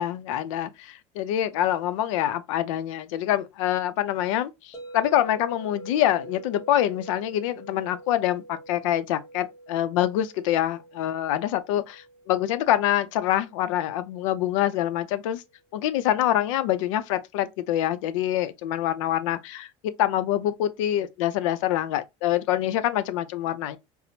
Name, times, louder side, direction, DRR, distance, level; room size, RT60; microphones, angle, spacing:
voice 1, 0.0-15.4 15.7-19.7 20.0-23.8, left 12 dB, 90° left, 0.5 m, -25 dB
sound 1, 4.7-14.8, right 2 dB, 20° left, 0.7 m, -46 dB
4.2 x 2.0 x 2.7 m
supercardioid pair, 115°, 16 cm